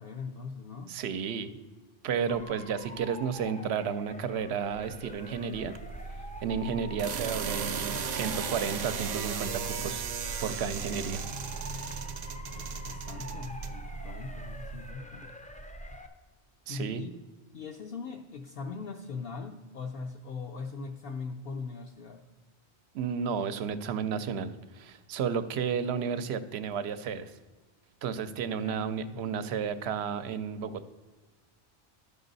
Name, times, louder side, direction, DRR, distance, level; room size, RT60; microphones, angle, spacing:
voice 1, 0.0-1.0 12.6-15.3 16.7-17.2 17.5-22.3 28.6-29.6, left 4 dB, 65° left, 2 dB, 0.8 m, -41 dB
voice 2, 0.9-1.5 2.0-5.7 6.4-10.0 10.4-11.2 16.7-17.0 22.9-27.3 28.0-30.9, right 7 dB, 75° right, 12 dB, 0.9 m, -32 dB
Motor vehicle (road) / Siren, 2.3-16.1, equal, 10° left, 0.4 m, -46 dB
sound 1, 4.8-14.9, right 6 dB, 55° right, 0.5 m, -36 dB
12.0 x 5.4 x 4.0 m, 1.3 s
omnidirectional pair, 1.1 m